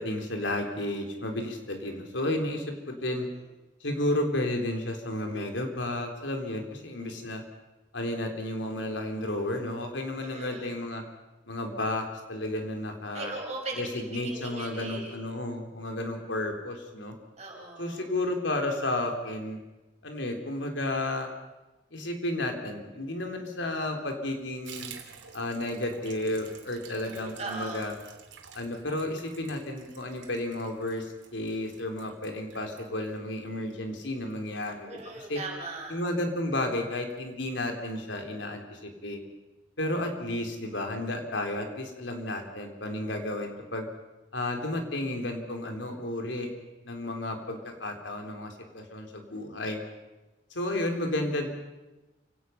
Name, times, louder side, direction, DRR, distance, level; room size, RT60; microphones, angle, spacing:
voice 1, 0.0-3.3 3.8-7.4 7.9-11.0 11.5-13.3 13.8-17.1 17.8-19.6 20.0-21.3 21.9-24.9 25.3-27.9 28.5-31.1 31.3-35.4 35.9-39.2 39.8-43.9 44.3-46.5 46.8-49.8 50.5-51.5, left 1 dB, 85° left, 4 dB, 3.5 m, -32 dB
voice 2, 10.2-10.8 13.1-15.2 17.4-18.1 26.9-27.8 34.8-36.0, right 3 dB, 35° right, -1 dB, 5.9 m, -39 dB
Water tap faucet / Bathtub (filling or washing), 24.6-35.6 35.9-36.1 36.4-36.5 36.7-37.2 37.5-37.6 37.9-38.0, right 6 dB, 85° right, 2.9 m, -51 dB
29.0 x 17.0 x 5.8 m, 1.1 s
head